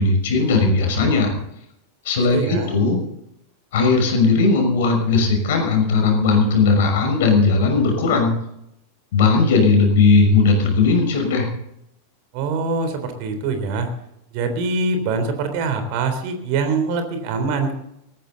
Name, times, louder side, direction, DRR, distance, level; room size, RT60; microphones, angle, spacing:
voice 1, 0.0-1.3 2.0-3.0 3.7-8.3 9.1-11.5, left 4 dB, 55° left, 3 dB, 5.9 m, -17 dB
voice 2, 2.2-2.7 12.3-13.9 14.3-17.7, right 4 dB, 45° right, 7 dB, 3.6 m, -24 dB
19.5 x 15.0 x 4.0 m, 0.80 s
figure-of-eight pair, 90°, 0 cm